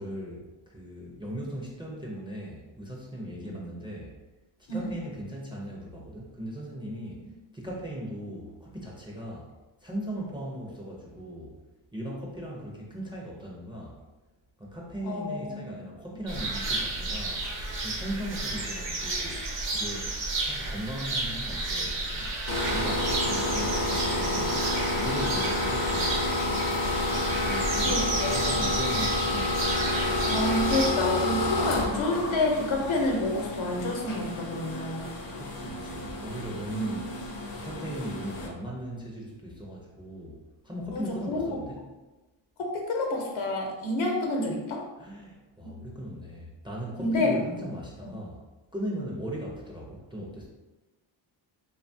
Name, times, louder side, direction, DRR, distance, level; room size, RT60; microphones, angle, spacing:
voice 1, 0.0-4.1 4.7-7.2 7.5-9.5 9.8-11.6 11.9-13.9 14.6-17.4 17.8-19.4 19.7-22.3 22.7-24.6 24.9-26.2 27.3-29.8 35.3-37.1 37.5-40.4 40.6-41.9 45.0-48.4 48.7-50.5, equal, 10° right, -3 dB, 0.4 m, -38 dB
voice 2, 15.0-15.8 27.8-28.6 30.2-35.2 36.7-36.9 40.9-41.6 42.6-44.8 47.0-47.4 48.0-48.1, left 2 dB, 80° left, 1 dB, 0.8 m, -29 dB
sound 1, 16.3-30.9, right 2 dB, 65° right, 0.8 m, -32 dB
sound 2, 22.5-38.5, left 2 dB, 50° left, 0.5 m, -30 dB
2.9 x 2.2 x 2.6 m, 1.1 s
wide cardioid pair, 120°, 47 cm